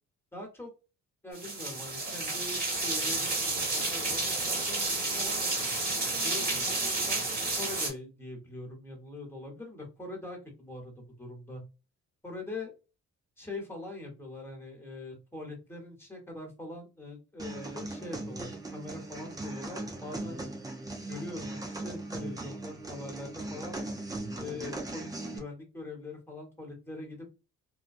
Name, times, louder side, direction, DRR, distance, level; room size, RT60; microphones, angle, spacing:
voice 1, 0.3-0.7 1.2-5.4 6.2-10.9 11.2-11.6 12.2-12.7 13.4-20.4 21.1-23.8 24.4-27.4, left 2 dB, 10° left, 1 dB, 1.2 m, -43 dB
sound 1, 1.3-7.9, right 2 dB, 30° right, 1.2 m, -31 dB
sound 2, 17.4-25.4, right 2 dB, 10° right, 0.5 m, -39 dB
2.2 x 2.2 x 2.5 m, 0.30 s
cardioid pair, 90°, 30 cm